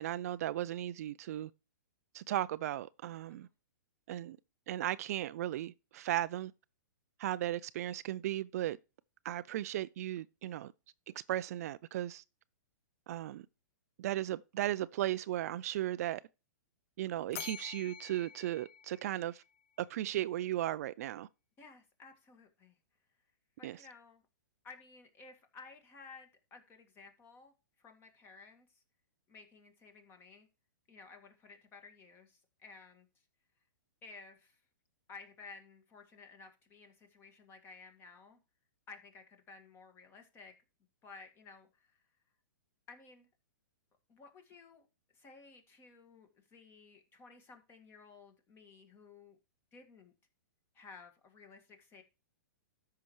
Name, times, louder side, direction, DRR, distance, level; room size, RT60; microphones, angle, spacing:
voice 1, 0.0-1.5 2.1-3.5 4.1-4.4 4.7-6.5 7.2-8.8 9.2-10.7 11.3-12.2 13.1-13.5 14.0-16.2 17.0-19.4 19.8-21.3 23.6-23.8, right 13 dB, 50° right, 0.4 m, -36 dB
Bell, 17.3-19.6, left 9 dB, 50° left, 0.8 m, -47 dB
voice 2, 21.6-22.8 23.6-24.2 24.6-28.8 29.3-30.5 30.9-33.1 34.0-34.6 35.1-38.4 38.9-40.5 41.0-42.0 42.9-43.3 44.1-44.9 45.1-49.4 49.7-50.1 50.7-52.0, left 4 dB, 20° left, 1.9 m, -55 dB
13.0 x 5.7 x 3.2 m
hypercardioid pair, 140°, 10 cm